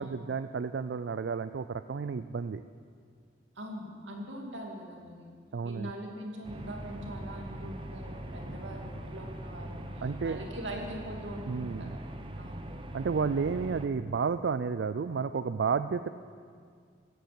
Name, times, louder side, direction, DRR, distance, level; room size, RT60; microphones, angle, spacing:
voice 1, 0.0-2.6 5.5-5.9 10.0-10.4 11.5-11.9 12.9-16.1, right 5 dB, 70° right, 12 dB, 0.4 m, -31 dB
voice 2, 3.6-5.3 5.6-12.0 12.4-12.7, equal, 85° right, 1 dB, 2.4 m, -42 dB
sound 1, 6.4-13.9, right 1 dB, 30° right, 0.9 m, -41 dB
16.5 x 9.2 x 7.6 m, 2.1 s
head